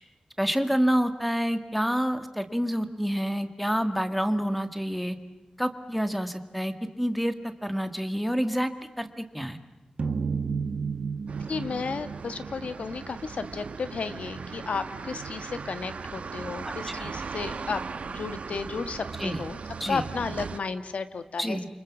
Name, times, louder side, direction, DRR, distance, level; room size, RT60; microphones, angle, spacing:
voice 1, 0.4-5.2 5.6-8.7 9.0-9.6 16.6-17.1 19.2-19.4 19.8-20.0 21.4-21.7, equal, ahead, 9 dB, 1.7 m, -28 dB
sound 1, 10.0-13.2, right 5 dB, 55° right, 1.6 m, -32 dB
sound 2, 11.3-20.6, right 5 dB, 75° right, 1.2 m, -38 dB
voice 2, 11.5-19.6 19.9-21.6, left 5 dB, 75° left, 10 dB, 1.4 m, -33 dB
28.5 x 25.0 x 7.3 m, 0.94 s
wide cardioid pair, 115°, 2 cm